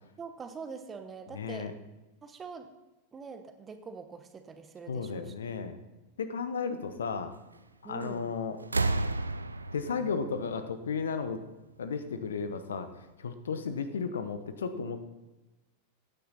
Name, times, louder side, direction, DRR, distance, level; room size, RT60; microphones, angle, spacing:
voice 1, 0.2-1.7 2.2-2.7 3.1-5.4 7.8-8.4, right 5 dB, 20° right, 8 dB, 1.1 m, -44 dB
voice 2, 1.3-1.7 4.9-5.8 6.2-7.3 7.8-8.6 9.7-11.4 11.8-12.9 13.2-15.0, left 5 dB, 65° left, 11 dB, 0.9 m, -34 dB
sound 1, 8.0-8.3 8.6-11.4 12.5-12.6, right 2 dB, 80° right, 0.5 m, -32 dB
15.5 x 9.1 x 4.1 m, 1.1 s
figure-of-eight pair, 90°, 0 cm